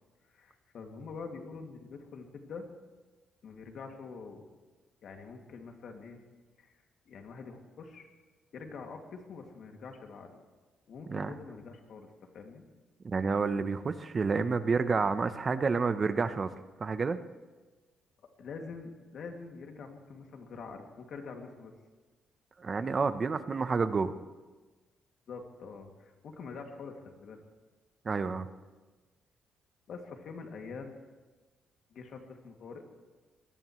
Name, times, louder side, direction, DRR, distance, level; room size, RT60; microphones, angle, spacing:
voice 1, 0.3-2.7 3.4-4.5 5.0-6.2 6.6-8.1 8.5-10.4 10.9-12.6 18.4-21.7 25.3-27.4 29.9-31.0 31.9-32.8, left 4 dB, 65° left, 3 dB, 2.3 m, -45 dB
voice 2, 13.0-16.5 16.8-17.2 22.6-24.1 28.0-28.5, right 4 dB, 35° right, 11 dB, 0.8 m, -29 dB
23.5 x 18.5 x 3.1 m, 1.3 s
cardioid pair, 90°, 0 cm